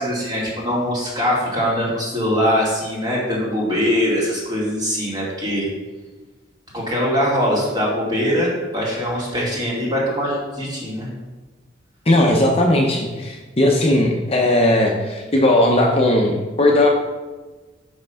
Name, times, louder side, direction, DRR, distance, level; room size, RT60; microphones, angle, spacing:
voice 1, 0.0-5.7 6.7-11.1, equal, 20° right, -5 dB, 2.3 m, -22 dB
voice 2, 12.1-16.9, left 1 dB, 30° left, 0 dB, 0.7 m, -17 dB
5.7 x 5.2 x 5.7 m, 1.2 s
head